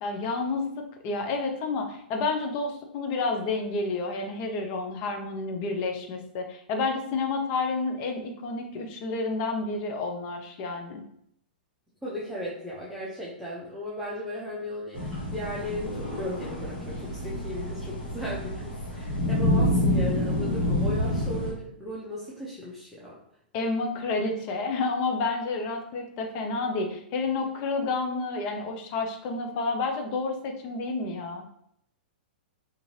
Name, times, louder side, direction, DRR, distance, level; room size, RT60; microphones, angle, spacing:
voice 1, 0.0-11.0 23.5-31.4, left 3 dB, 40° left, 4 dB, 0.6 m, -30 dB
voice 2, 12.0-23.2, left 1 dB, ahead, -8 dB, 0.6 m, -36 dB
sound 1, 14.9-21.5, left 1 dB, 75° left, 1.1 m, -28 dB
2.5 x 2.5 x 3.0 m, 0.72 s
figure-of-eight pair, 110°, 6 cm